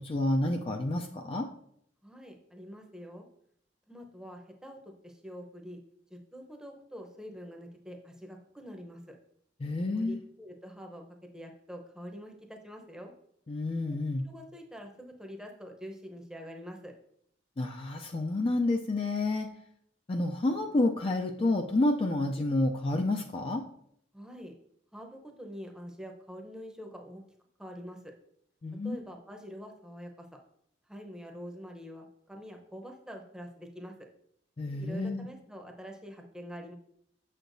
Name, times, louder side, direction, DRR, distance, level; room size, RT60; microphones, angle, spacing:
voice 1, 0.0-1.5 9.6-10.2 13.5-14.3 17.6-19.5 20.1-23.6 28.6-29.0 34.6-35.3, left 2 dB, 30° left, 4 dB, 0.4 m, -29 dB
voice 2, 2.0-3.3 3.9-4.8 5.0-5.8 6.1-9.2 9.9-11.0 11.3-13.1 13.9-14.0 14.2-16.9 24.1-24.5 24.9-27.2 27.6-28.1 28.8-30.3 30.9-33.9 34.8-36.7, equal, 5° right, 2 dB, 0.7 m, -45 dB
6.8 x 6.4 x 2.6 m, 0.69 s
head